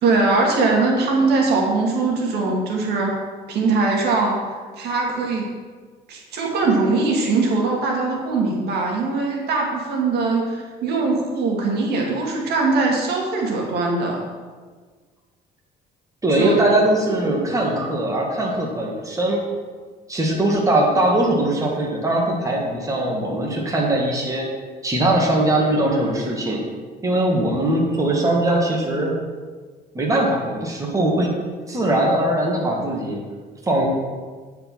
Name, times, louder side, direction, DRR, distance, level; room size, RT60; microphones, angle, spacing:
voice 1, 0.0-3.1 3.5-4.4 4.8-5.5 6.1-14.2 16.3-16.6 17.2-17.4, right 3 dB, 75° right, 0 dB, 1.9 m, -21 dB
voice 2, 16.2-19.4 20.1-24.4 24.8-26.7 27.0-29.1 29.9-31.3 31.7-33.2 33.6-33.9, right 1 dB, 20° right, -1 dB, 1.8 m, -20 dB
9.2 x 4.9 x 6.1 m, 1.5 s
cardioid pair, 110°, 17 cm